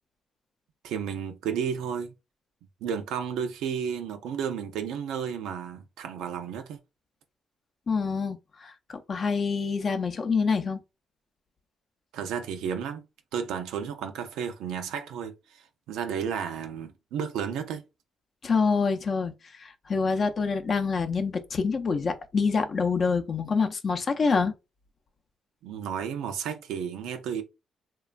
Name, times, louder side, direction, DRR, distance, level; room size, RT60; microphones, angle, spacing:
voice 1, 0.8-2.1 2.8-6.8 12.1-13.0 13.3-17.8 25.6-27.4, right 7 dB, 90° right, 0.4 m, -32 dB
voice 2, 7.9-8.7 9.1-10.8 18.4-24.5, left 5 dB, 45° left, 0.5 m, -26 dB
3.0 x 2.3 x 2.4 m
cardioid pair, 90°, 0 cm